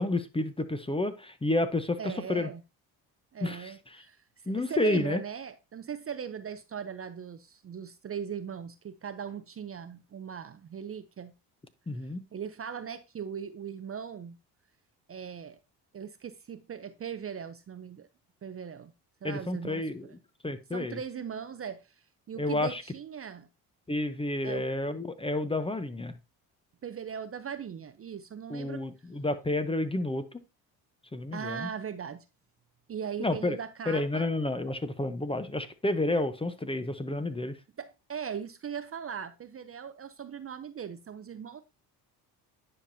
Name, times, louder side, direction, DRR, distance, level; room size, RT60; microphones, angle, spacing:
voice 1, 0.0-2.5 3.4-3.7 4.5-5.2 11.9-12.2 19.2-20.1 20.4-21.0 22.4-22.8 23.9-26.2 28.5-30.4 31.1-31.7 33.2-33.6 33.9-37.6, left 2 dB, 10° left, 0.8 m, -30 dB
voice 2, 2.0-2.6 3.3-11.3 12.3-14.4 15.1-15.6 15.9-18.1 18.4-18.9 19.2-20.1 20.7-23.5 24.4-24.7 26.8-28.8 31.3-32.2 32.9-34.3 37.8-41.6, right 7 dB, 30° right, 0.6 m, -39 dB
10.0 x 5.1 x 2.7 m
supercardioid pair, 70°, 45 cm